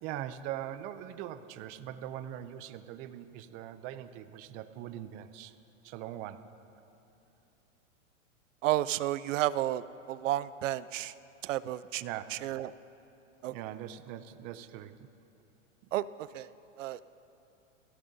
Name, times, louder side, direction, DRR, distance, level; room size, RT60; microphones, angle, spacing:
voice 1, 0.0-5.6 5.8-6.5 12.0-12.4 13.5-15.1 15.8-15.9, right 11 dB, 25° right, 12 dB, 0.3 m, -41 dB
voice 2, 8.6-9.8 10.1-11.1 11.4-12.0 12.4-12.7 13.4-13.5 15.9-16.5 16.8-17.0, right 14 dB, 75° right, 17 dB, 0.5 m, -31 dB
28.0 x 14.5 x 2.7 m, 2.9 s
hypercardioid pair, 135°, 38 cm